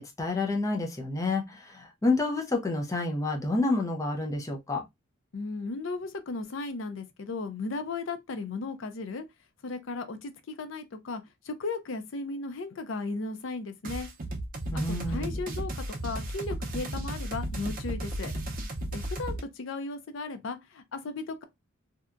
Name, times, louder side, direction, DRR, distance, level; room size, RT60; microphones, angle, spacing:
voice 1, 0.0-4.9 14.7-15.4, left 2 dB, 15° left, 0.4 m, -29 dB
voice 2, 5.3-9.2 9.6-14.1 14.9-18.3 18.9-21.4, left 3 dB, 70° left, 0.5 m, -36 dB
sound 1, 13.8-19.4, right 1 dB, 45° right, 0.6 m, -34 dB
2.7 x 2.2 x 2.4 m
head